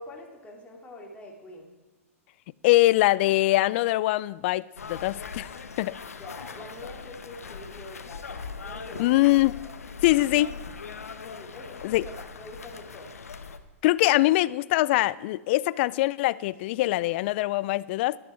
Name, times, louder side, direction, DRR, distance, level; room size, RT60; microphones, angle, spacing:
voice 1, 0.0-1.7 6.2-9.2 9.5-9.7 11.2-13.1, left 2 dB, 15° left, 2.9 m, -44 dB
voice 2, 2.6-5.5 5.8-5.9 9.0-9.6 10.0-10.5 11.8-12.0 13.8-18.2, left 17 dB, 50° left, 0.4 m, -23 dB
sound 1, 4.8-13.6, left 5 dB, 85° left, 0.9 m, -40 dB
13.5 x 11.0 x 4.5 m
hypercardioid pair, 110°, 8 cm